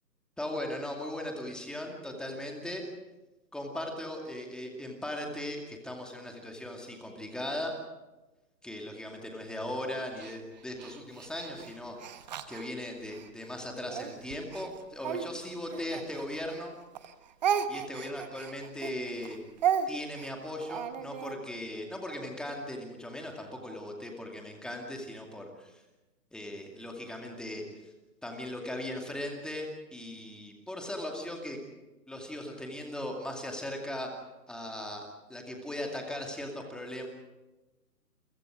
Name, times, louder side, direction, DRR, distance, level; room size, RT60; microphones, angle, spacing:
voice 1, 0.4-2.8 3.5-7.7 8.6-12.0 12.5-16.7 17.7-19.4 19.9-25.8 26.3-27.9 28.2-31.6 32.1-34.1 34.5-37.1, left 1 dB, ahead, 1 dB, 2.3 m, -38 dB
Speech, 10.2-13.3 13.9-16.7 16.9-21.4, right 8 dB, 25° right, 1.1 m, -34 dB
29.5 x 23.0 x 4.9 m, 1.1 s
hypercardioid pair, 150°, 50 cm